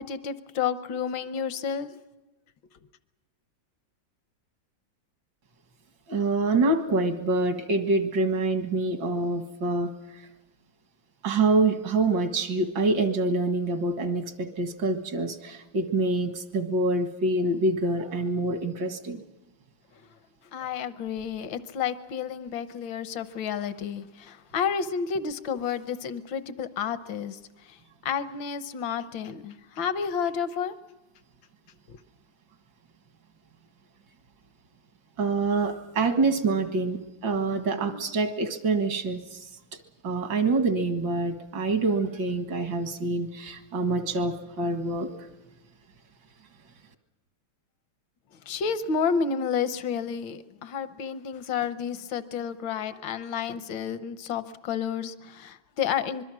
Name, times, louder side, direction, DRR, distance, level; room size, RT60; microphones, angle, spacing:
voice 1, 0.0-1.9 20.5-27.4 27.7-27.8 28.0-30.7 31.9-32.0 48.5-56.2, left 7 dB, 80° left, 12 dB, 1.7 m, -30 dB
voice 2, 6.1-9.9 11.2-19.2 35.2-39.4 40.0-45.1, right 3 dB, 75° right, 8 dB, 2.5 m, -26 dB
25.5 x 22.0 x 6.1 m, 1.0 s
omnidirectional pair, 2.0 m